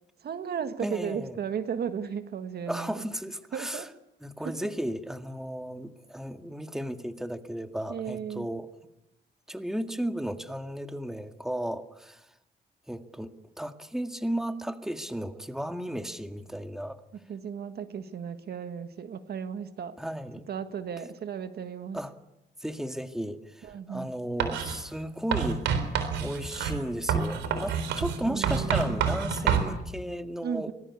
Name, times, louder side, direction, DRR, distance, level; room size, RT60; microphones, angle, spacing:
voice 1, 0.2-3.0 3.5-3.9 4.4-4.6 7.9-8.5 17.3-20.0 20.5-22.0 23.6-24.1 28.3-29.0 30.4-30.7, right 7 dB, 60° right, 9 dB, 1.7 m, -35 dB
voice 2, 0.8-1.4 2.7-3.9 4.2-8.7 9.5-12.3 12.9-17.0 20.0-20.5 21.9-22.1 22.6-25.7 26.2-30.7, equal, ahead, 7 dB, 1.9 m, -34 dB
Writing, 24.4-24.8 25.3-29.7, right 7 dB, 85° right, 3.8 m, -28 dB
24.5 x 20.0 x 8.5 m, 0.90 s
supercardioid pair, 70°, 18 cm